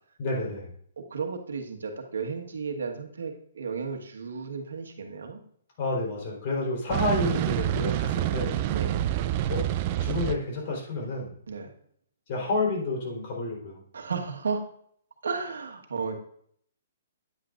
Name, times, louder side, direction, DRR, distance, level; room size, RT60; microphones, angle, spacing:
voice 1, 0.2-0.7 5.8-8.6 9.5-9.6 10.0-11.3 12.3-13.8, left 2 dB, 45° left, -2 dB, 3.9 m, -30 dB
voice 2, 1.0-5.4 8.6-9.1 11.5-11.7 13.9-14.6 15.2-16.1, right 5 dB, 85° right, 3 dB, 1.4 m, -33 dB
sound 1, 6.9-10.4, right 12 dB, 40° right, 0.5 m, -27 dB
9.6 x 9.1 x 2.5 m, 0.63 s
hypercardioid pair, 145°, 0 cm